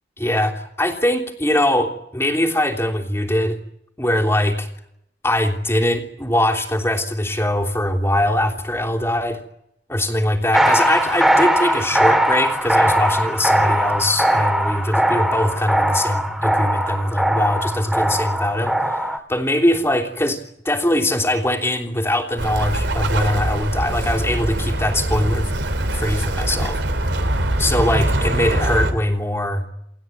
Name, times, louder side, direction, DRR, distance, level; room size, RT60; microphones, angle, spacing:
voice 1, 0.2-3.6 4.0-4.7 5.2-9.4 9.9-20.4 20.7-25.5 25.9-26.8 27.6-29.7, left 1 dB, 15° left, 3 dB, 3.3 m, -21 dB
sound 1, 10.5-19.2, right 1 dB, 5° right, 2.8 m, -20 dB
Bird, 22.4-28.9, right 1 dB, 75° right, 3.2 m, -22 dB
29.5 x 19.5 x 9.4 m, 0.80 s
head